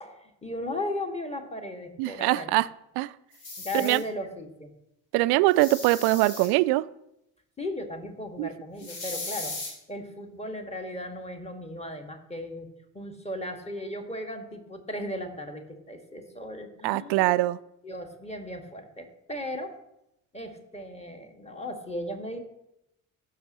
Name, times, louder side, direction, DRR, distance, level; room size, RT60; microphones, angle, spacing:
voice 1, 0.0-2.6 3.6-4.7 7.6-9.6 9.9-12.7 12.9-17.4 17.8-19.7 20.3-22.4, left 1 dB, 15° left, 4 dB, 1.8 m, -36 dB
voice 2, 2.0-2.7 3.0-3.1 3.7-4.0 5.1-6.9 8.4-8.5 16.8-17.6, right 19 dB, 60° right, 17 dB, 0.5 m, -23 dB
sound 1, 3.3-4.0 5.5-6.5 8.8-9.7, left 3 dB, 60° left, 2.8 m, -37 dB
16.0 x 6.5 x 3.0 m, 0.83 s
figure-of-eight pair, 50°, 45 cm